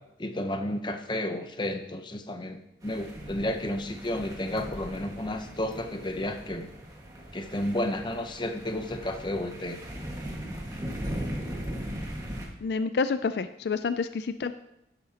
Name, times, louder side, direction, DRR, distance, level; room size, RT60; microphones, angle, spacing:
voice 1, 0.2-6.7 7.3-9.8, left 1 dB, 25° left, 6 dB, 0.8 m, -32 dB
sound 1, 2.8-12.5, equal, 20° right, 1.7 m, -39 dB
voice 2, 12.6-14.5, left 4 dB, 65° left, 11 dB, 0.4 m, -28 dB
12.0 x 10.5 x 2.9 m, 0.84 s
head